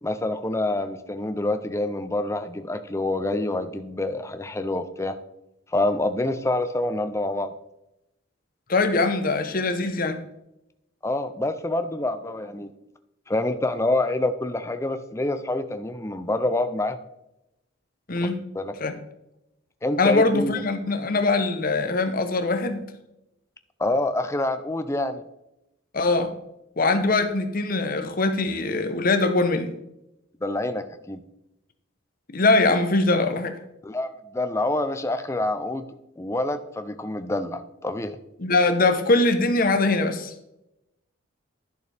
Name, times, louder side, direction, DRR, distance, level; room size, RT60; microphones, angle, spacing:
voice 1, 0.0-5.2 5.7-7.5 11.0-12.7 13.3-17.0 18.2-18.3 18.5-18.7 19.8-20.6 23.8-25.2 30.4-31.2 33.8-35.8 36.2-38.2, left 2 dB, 15° left, 10 dB, 0.4 m, -27 dB
voice 2, 8.7-10.2 18.1-18.4 18.8-19.0 20.0-22.8 25.9-26.3 26.8-29.7 32.3-33.6 38.4-40.3, left 3 dB, 45° left, 8 dB, 0.9 m, -22 dB
11.0 x 6.7 x 3.4 m, 0.88 s
head